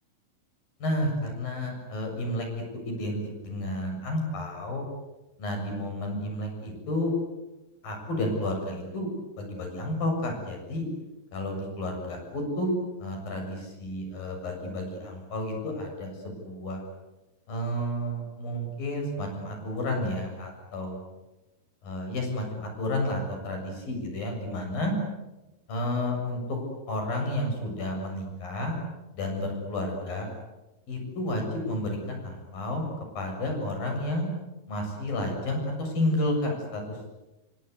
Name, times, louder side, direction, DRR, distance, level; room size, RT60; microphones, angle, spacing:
voice 1, 0.8-4.8 5.4-7.1 7.8-9.1 9.4-10.8 11.3-12.7 13.0-16.8 17.5-21.0 21.8-25.0 25.7-26.6 26.9-28.8 29.2-30.3 30.9-32.8 33.2-34.3 34.7-36.8, left 1 dB, 85° left, 3 dB, 9.1 m, -31 dB
29.0 x 24.0 x 8.1 m, 1.0 s
omnidirectional pair, 4.0 m